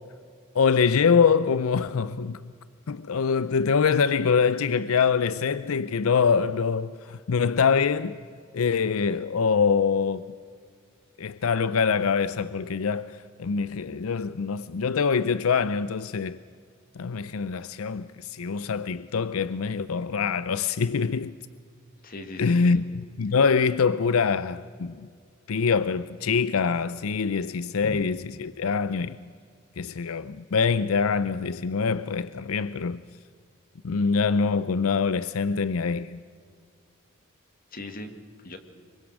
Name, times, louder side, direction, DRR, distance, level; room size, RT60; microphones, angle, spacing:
voice 1, 0.5-2.4 2.9-8.2 8.5-10.2 11.2-16.4 17.0-21.3 22.4-22.8 23.2-25.0 25.5-29.2 29.8-33.0 33.8-36.2, left 5 dB, 85° left, 0.5 m, -24 dB
voice 2, 22.0-22.9 23.3-23.4 27.8-28.0 37.7-38.1 38.4-38.6, left 1 dB, 45° left, 1.9 m, -39 dB
25.0 x 23.5 x 6.3 m
head